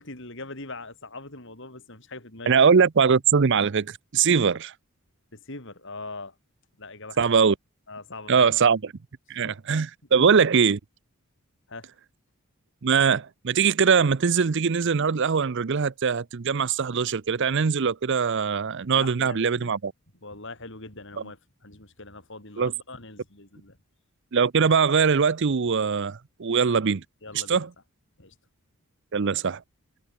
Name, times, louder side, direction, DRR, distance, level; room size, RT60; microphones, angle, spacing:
voice 1, 0.0-2.7 4.3-4.5 5.3-6.4 6.8-7.3 7.9-8.5 9.4-9.7 11.7-11.9 18.9-19.7 20.2-23.8 27.2-27.7 28.2-28.4, left 2 dB, 55° left, 5.5 m, -42 dB
voice 2, 2.5-4.7 7.2-7.5 8.3-8.9 9.3-10.8 12.8-19.9 22.6-22.7 24.3-27.0 27.3-27.7 29.1-29.6, right 6 dB, 55° right, 0.6 m, -22 dB
head